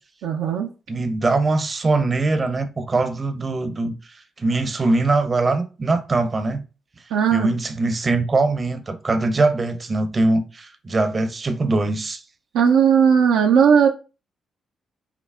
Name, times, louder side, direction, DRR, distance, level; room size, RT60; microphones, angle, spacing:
voice 1, 0.2-0.7 7.1-7.5 12.5-13.9, right 7 dB, 80° right, 0.4 m, -16 dB
voice 2, 0.9-3.9 4.4-6.6 7.3-12.2, right 2 dB, 40° right, 0.6 m, -22 dB
5.7 x 2.0 x 2.3 m
hypercardioid pair, 45°, 0 cm